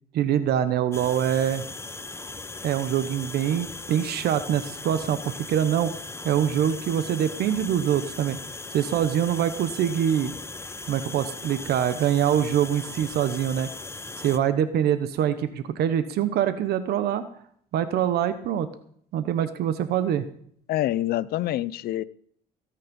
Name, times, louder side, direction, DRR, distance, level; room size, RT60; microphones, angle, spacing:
voice 1, 0.1-1.6 2.6-5.2 5.5-5.9 6.2-8.4 8.7-10.3 10.9-13.7 14.2-17.2 17.7-18.7 19.1-20.2, right 10 dB, 70° right, 12 dB, 1.1 m, -24 dB
sound 1, 0.9-14.4, left 3 dB, 15° left, 1.0 m, -38 dB
voice 2, 20.7-22.0, left 14 dB, 65° left, 19 dB, 0.6 m, -26 dB
17.0 x 9.0 x 5.4 m, 0.62 s
cardioid pair, 110°, 17 cm